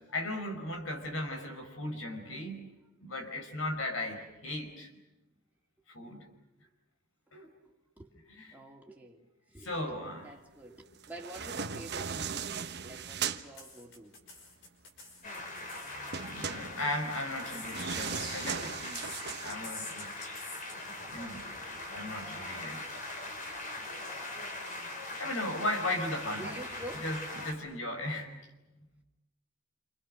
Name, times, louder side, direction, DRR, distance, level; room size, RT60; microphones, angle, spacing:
voice 1, 0.0-2.7 3.0-4.9 5.9-6.3 7.3-7.5 8.5-8.6 9.6-10.3 16.3-20.3 21.1-21.5 21.9-22.8 25.2-26.4 27.0-28.3 28.7-28.8, left 1 dB, 80° left, 5 dB, 5.3 m, -37 dB
voice 2, 8.5-14.2 18.8-18.9 26.3-27.1, right 1 dB, 10° right, -1 dB, 2.8 m, -49 dB
sound 1, 11.0-13.4 16.1-19.5, right 6 dB, 55° right, 1.1 m, -37 dB
sound 2, 13.6-16.3 17.2-18.6 18.9-20.7, left 3 dB, 65° left, 5.6 m, -46 dB
sound 3, 15.2-27.5, left 2 dB, 40° left, 4.0 m, -41 dB
28.0 x 28.0 x 6.5 m, 0.99 s
head